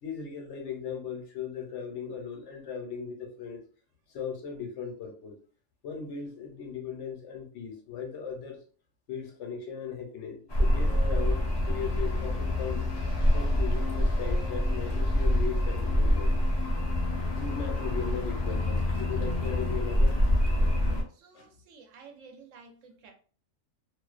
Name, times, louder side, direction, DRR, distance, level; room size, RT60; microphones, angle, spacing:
voice 1, 0.0-3.6 4.1-5.4 5.8-8.6 9.1-11.4 11.7-12.9 13.3-16.4 17.3-20.2 21.3-21.5, left 6 dB, 65° left, 1 dB, 0.9 m, -38 dB
sound 1, 10.5-21.0, left 1 dB, 45° left, 0.3 m, -26 dB
voice 2, 21.1-23.1, right 5 dB, 75° right, 3 dB, 0.9 m, -52 dB
2.4 x 2.1 x 2.3 m, 0.42 s
omnidirectional pair, 1.4 m